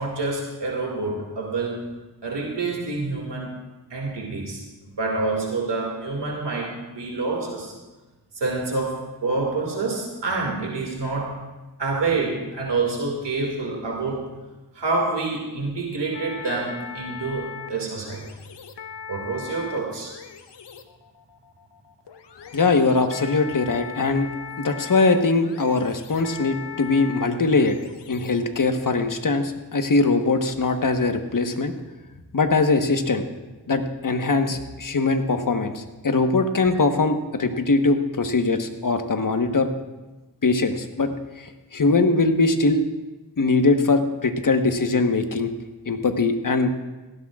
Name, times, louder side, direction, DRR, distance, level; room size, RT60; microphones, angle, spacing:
voice 1, 0.0-1.8 2.2-3.5 3.9-4.6 5.0-7.7 8.4-11.3 11.8-14.3 14.7-18.2 19.1-20.1, right 3 dB, 90° right, -1 dB, 2.3 m, -27 dB
sound 1, 16.1-29.0, left 7 dB, 85° left, 0.9 m, -40 dB
voice 2, 22.5-24.3 24.6-27.8 28.1-31.7 32.3-33.2 33.7-39.7 40.4-41.1 41.4-42.8 43.4-45.5 45.9-46.7, left 3 dB, 50° left, 6 dB, 1.3 m, -21 dB
18.0 x 16.0 x 2.5 m, 1.2 s
wide cardioid pair, 65°, 41 cm